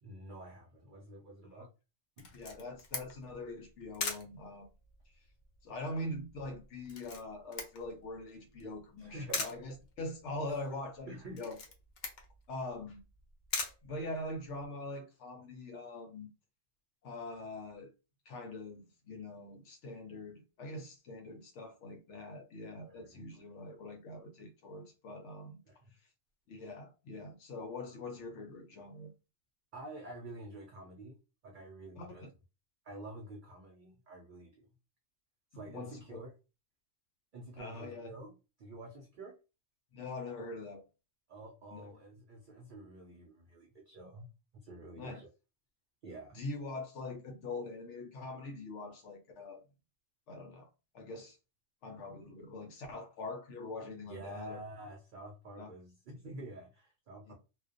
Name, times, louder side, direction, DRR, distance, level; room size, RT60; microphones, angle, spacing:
voice 1, 0.0-1.7 2.2-2.3 9.0-9.7 10.5-10.6 11.1-11.4 22.9-23.3 25.7-25.9 29.7-32.3 32.8-34.7 35.5-36.3 37.3-39.4 41.3-45.3 46.0-46.4 54.0-57.3, right 1 dB, 60° right, 0.5 m, -48 dB
Camera, 2.2-14.7, left 4 dB, 55° left, 0.5 m, -43 dB
voice 2, 2.3-4.7 5.6-11.6 12.5-13.0 13.8-16.3 17.0-17.9 18.3-25.6 26.5-29.1 32.0-32.3 35.7-36.2 37.6-38.1 39.9-40.8 41.7-41.9 45.0-45.2 46.3-49.6 50.3-50.7 50.9-51.4 51.8-54.6 55.6-55.7 57.3-57.4, left 2 dB, 70° left, 0.9 m, -43 dB
2.4 x 2.2 x 2.4 m
omnidirectional pair, 1.3 m